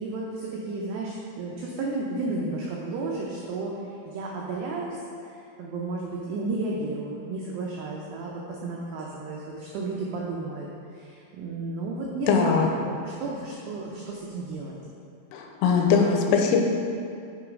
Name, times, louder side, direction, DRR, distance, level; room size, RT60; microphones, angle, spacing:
voice 1, 0.0-3.7 4.1-10.7 10.9-14.8, right 3 dB, 85° right, -3 dB, 2.4 m, -33 dB
voice 2, 12.3-12.7 15.3-16.6, left 5 dB, 90° left, 2 dB, 3.2 m, -21 dB
9.1 x 4.7 x 5.1 m, 2.5 s
omnidirectional pair, 5.8 m